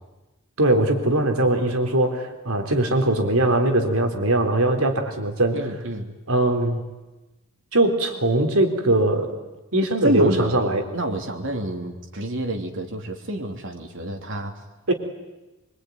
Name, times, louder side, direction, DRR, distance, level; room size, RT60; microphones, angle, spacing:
voice 1, 0.6-5.6 6.3-6.8 7.7-9.3 9.7-10.8 14.9-15.0, right 1 dB, 75° right, 5 dB, 3.9 m, -21 dB
voice 2, 5.5-6.2 10.0-10.5 10.9-14.6, right 1 dB, 60° right, 4 dB, 3.2 m, -28 dB
25.0 x 24.5 x 9.6 m, 1.1 s
head